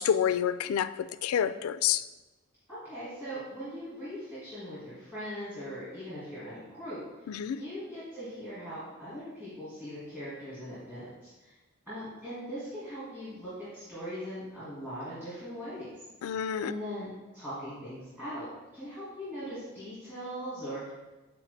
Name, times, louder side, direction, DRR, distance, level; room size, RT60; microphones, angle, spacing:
voice 1, 0.0-2.0 7.3-7.6 16.2-16.7, left 9 dB, 80° left, 0.3 m, -28 dB
voice 2, 2.7-7.3 7.5-11.5 11.9-16.4 16.6-20.9, equal, 10° right, 1.9 m, -40 dB
8.9 x 4.3 x 3.3 m
head